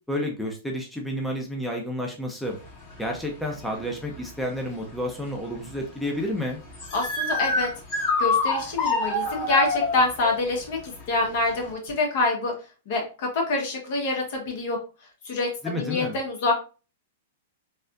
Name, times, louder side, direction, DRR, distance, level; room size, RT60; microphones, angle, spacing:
voice 1, 0.1-2.6 3.0-6.6 15.6-16.2, left 1 dB, ahead, 0 dB, 0.6 m, -30 dB
sound 1, 2.4-11.7, left 3 dB, 40° left, 1.8 m, -29 dB
voice 2, 6.9-7.7 8.2-12.5 12.9-14.8 15.2-16.5, left 2 dB, 55° left, 1 dB, 1.4 m, -26 dB
4.1 x 2.4 x 2.5 m, 0.34 s
hypercardioid pair, 110°, 0 cm